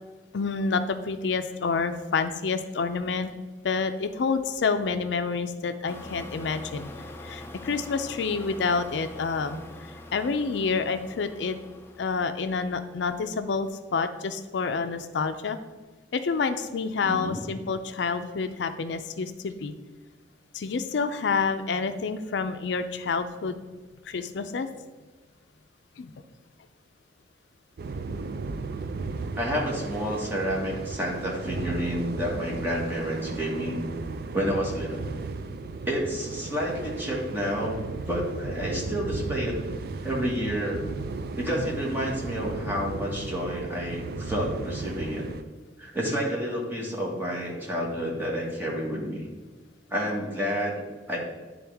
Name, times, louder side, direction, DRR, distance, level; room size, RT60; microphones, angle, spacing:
voice 1, 0.3-3.3 3.6-6.9 7.2-11.6 12.0-15.6 16.1-19.7 20.5-23.6 24.0-24.7 26.0-26.1, left 4 dB, 75° left, 10 dB, 0.4 m, -28 dB
sound 1, 5.9-12.9, left 2 dB, 15° left, 0.5 m, -44 dB
voice 2, 17.0-17.4 29.4-33.8 34.3-35.1 35.8-37.8 38.1-39.6 40.0-40.8 41.4-45.2 45.8-49.3 49.9-51.2, equal, 10° right, -3 dB, 1.5 m, -29 dB
sound 2, 27.8-45.4, right 3 dB, 55° right, 0.4 m, -35 dB
10.5 x 3.8 x 3.5 m, 1.3 s
head